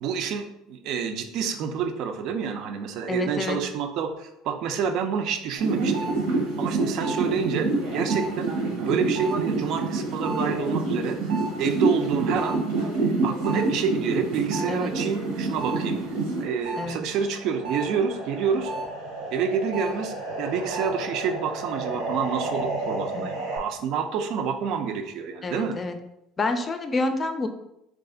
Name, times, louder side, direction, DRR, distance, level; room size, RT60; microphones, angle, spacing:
voice 1, 0.0-6.2 6.6-8.5 8.8-12.6 13.0-16.0 16.4-18.7 19.3-25.8, right 6 dB, 65° right, 6 dB, 0.5 m, -28 dB
voice 2, 3.1-3.6 14.7-14.9 16.8-17.0 23.1-23.3 25.4-26.0 26.4-27.5, left 3 dB, 25° left, 7 dB, 0.4 m, -28 dB
sound 1, 5.6-16.9 17.2-23.6, right 3 dB, 85° right, 0.9 m, -28 dB
3.2 x 2.4 x 3.8 m, 0.83 s
supercardioid pair, 110°, 0 cm